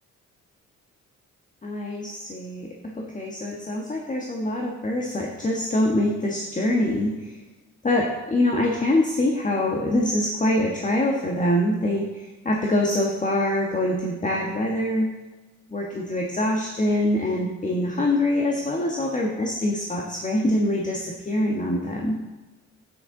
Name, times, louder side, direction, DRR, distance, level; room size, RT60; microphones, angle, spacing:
voice 1, 1.6-7.4 7.8-15.1 15.7-22.2, left 1 dB, 25° left, -1 dB, 1.4 m, -24 dB
10.0 x 9.4 x 3.9 m, 1.2 s
cardioid pair, 90°, 30 cm